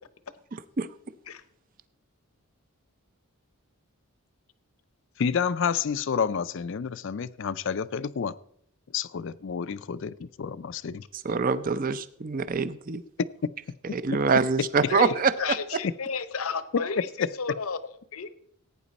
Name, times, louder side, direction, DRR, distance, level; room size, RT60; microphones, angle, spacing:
voice 1, 0.5-0.9 11.1-13.0 13.9-15.8, right 5 dB, 40° right, 14 dB, 0.5 m, -25 dB
voice 2, 5.2-8.4 8.9-11.0 13.2-13.8 16.7-17.3, left 6 dB, 55° left, 17 dB, 0.4 m, -29 dB
voice 3, 14.9-17.1 17.4-17.8 18.1-18.3, left 5 dB, 70° left, 14 dB, 0.8 m, -31 dB
16.5 x 9.1 x 4.1 m, 0.69 s
head